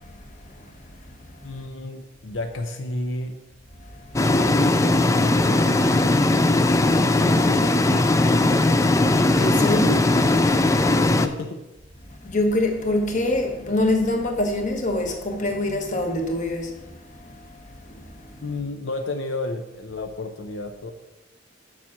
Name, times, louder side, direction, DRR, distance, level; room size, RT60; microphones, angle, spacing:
voice 1, 1.4-3.4 4.3-5.0 5.5-7.7 11.0-11.6 18.4-20.9, left 2 dB, 80° left, 0.8 m, -33 dB
sound 1, 4.2-11.3, left 2 dB, 15° left, 0.4 m, -19 dB
voice 2, 9.4-10.0 12.2-16.7, left 1 dB, 40° left, 1.4 m, -24 dB
7.3 x 5.9 x 7.3 m
head